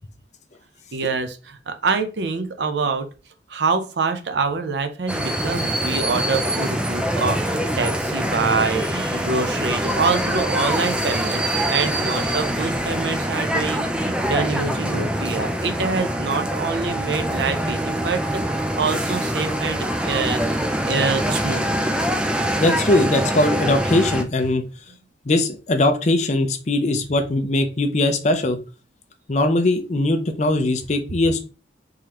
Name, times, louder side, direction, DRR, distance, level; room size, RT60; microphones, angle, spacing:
voice 1, 0.9-3.1 3.5-20.6 20.9-21.7, right 4 dB, 75° right, 8 dB, 0.6 m, -25 dB
sound 1, 5.1-24.2, right 1 dB, 5° right, 0.4 m, -24 dB
voice 2, 22.6-24.6 25.3-28.6 29.3-31.4, left 2 dB, 40° left, 7 dB, 0.6 m, -20 dB
3.7 x 3.1 x 2.8 m, 0.33 s
head